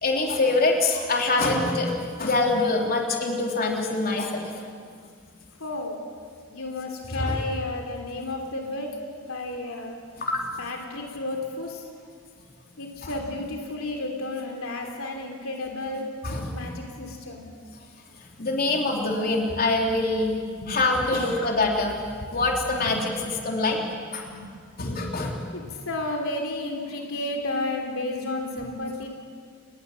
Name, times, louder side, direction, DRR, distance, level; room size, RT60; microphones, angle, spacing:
voice 1, 0.0-1.9 2.2-4.5 7.1-7.4 10.2-10.4 13.0-13.1 16.2-16.5 18.4-20.4 20.7-21.9 22.3-23.1 23.4-23.8 24.1-24.2 24.8-25.4, left 2 dB, 45° left, 1 dB, 3.5 m, -24 dB
voice 2, 5.6-6.0 6.5-9.0 9.3-10.0 10.6-11.9 12.8-16.1 16.5-17.5 20.3-20.8 21.1-21.5 22.3-22.5 22.8-22.9 23.4-29.1, left 2 dB, 75° left, 2 dB, 3.0 m, -33 dB
29.5 x 20.5 x 7.6 m, 2.1 s
head